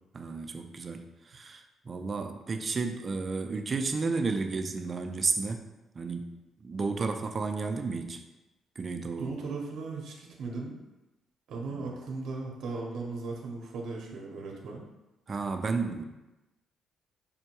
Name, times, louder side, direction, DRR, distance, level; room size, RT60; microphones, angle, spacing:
voice 1, 0.1-5.7 5.9-8.2 8.8-9.3 11.7-11.9 15.3-16.0, right 4 dB, 40° right, 6 dB, 0.4 m, -32 dB
voice 2, 9.2-10.8 11.5-14.8, right 3 dB, 70° right, -1 dB, 0.7 m, -37 dB
5.3 x 2.2 x 2.9 m, 1.0 s
cardioid pair, 90°, 0 cm